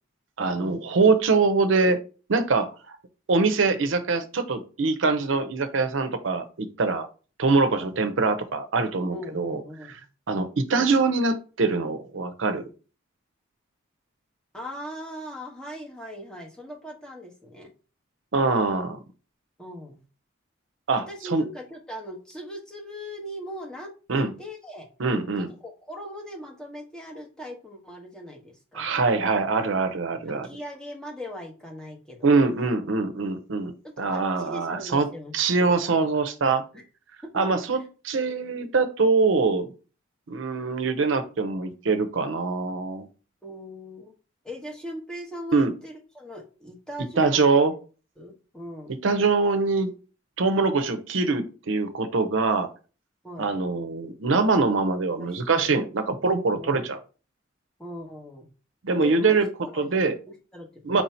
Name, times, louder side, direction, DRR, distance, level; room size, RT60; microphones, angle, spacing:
voice 1, 0.4-2.0 2.3-3.0 3.3-7.1 7.4-9.6 10.3-12.7 18.3-19.0 20.9-21.1 21.3-21.4 24.1-24.3 25.0-25.5 28.7-30.5 32.2-35.1 35.3-36.6 37.3-37.8 38.1-39.7 40.3-43.1 45.5-45.7 47.2-47.7 49.0-49.9 50.4-52.7 53.4-57.0 58.8-59.5 59.8-60.1 60.8-61.0, right 4 dB, 75° right, 9 dB, 0.6 m, -23 dB
voice 2, 9.1-10.0 14.5-17.7 19.6-20.0 21.1-24.9 25.4-28.9 30.3-32.3 34.0-35.3 35.8-35.9 36.7-36.8 37.7-37.8 43.4-44.1 44.4-47.6 48.2-48.9 53.2-53.5 55.2-55.7 56.6-56.9 57.8-58.5 59.0-61.0, equal, 5° left, -1 dB, 0.9 m, -40 dB
4.5 x 2.7 x 4.3 m, 0.35 s
head